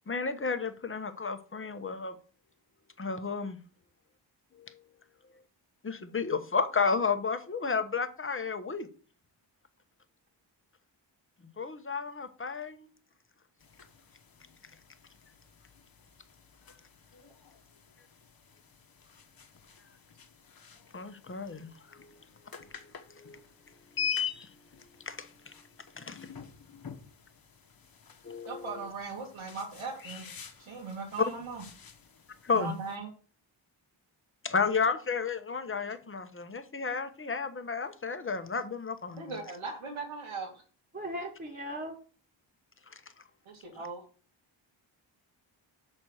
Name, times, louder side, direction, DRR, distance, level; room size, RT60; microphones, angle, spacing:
voice 1, 0.1-2.2 3.0-3.6 4.6-4.7 5.8-8.9 11.6-12.9 20.9-22.1 22.6-22.7 23.1-23.4 24.4-24.5 25.1-25.5 26.0-26.2 28.2-28.7 32.4-32.7 34.4-39.2, left 5 dB, 25° left, 1.0 m, -32 dB
sound 1, 13.6-33.0, left 7 dB, 50° left, 1.2 m, -44 dB
voice 2, 28.5-31.6 32.5-33.1 39.2-40.6 43.5-44.0, right 4 dB, 90° right, 2.1 m, -39 dB
voice 3, 40.9-42.0, equal, 25° right, 1.6 m, -38 dB
6.3 x 4.3 x 6.3 m
cardioid pair, 70°, 47 cm